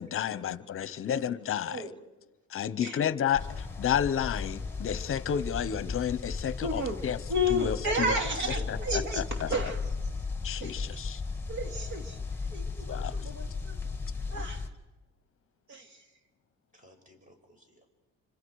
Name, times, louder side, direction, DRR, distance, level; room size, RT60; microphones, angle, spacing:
voice 1, 0.0-1.8 2.5-7.2 7.5-8.1 8.7-9.5 10.4-11.2 12.9-13.2, left 9 dB, 45° left, 0.9 m, -31 dB
voice 2, 0.8-1.3 1.6-2.0 2.8-3.1 8.1-9.2 12.4-13.2 16.7-17.9, equal, 25° right, 6.0 m, -51 dB
sound 1, 3.3-14.7, left 4 dB, 5° left, 1.8 m, -36 dB
voice 3, 6.6-7.0 7.3-9.9 10.6-11.0 11.5-12.2 12.5-13.8 14.3-14.6 15.7-16.0, left 1 dB, 65° right, 3.0 m, -32 dB
27.0 x 26.0 x 4.8 m
cardioid pair, 115°, 31 cm